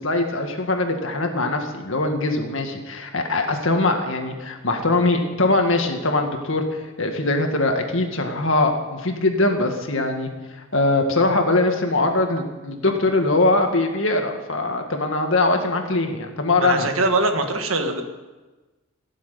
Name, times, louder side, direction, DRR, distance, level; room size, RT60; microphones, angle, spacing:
voice 1, 0.0-16.9, left 2 dB, 65° left, 4 dB, 1.9 m, -22 dB
voice 2, 16.6-18.0, right 2 dB, 75° right, 5 dB, 1.7 m, -22 dB
16.0 x 7.6 x 9.3 m, 1.2 s
head